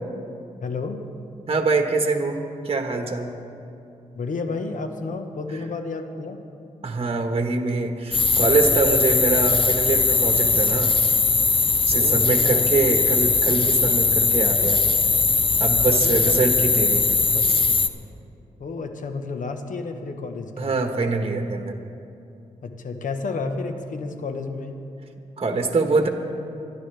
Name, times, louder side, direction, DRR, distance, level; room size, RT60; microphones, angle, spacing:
voice 1, 0.6-1.1 4.1-6.4 11.9-12.7 15.9-16.4 18.6-20.7 22.6-24.8, left 4 dB, 70° left, 6 dB, 1.3 m, -31 dB
voice 2, 1.5-2.4 2.6-3.4 6.8-10.9 11.8-15.0 15.6-17.6 20.6-21.8 25.4-26.1, right 3 dB, 45° right, 4 dB, 1.4 m, -24 dB
sound 1, 8.1-17.9, left 4 dB, 40° left, 0.7 m, -20 dB
24.0 x 11.5 x 3.4 m, 2.6 s
cardioid pair, 50°, 14 cm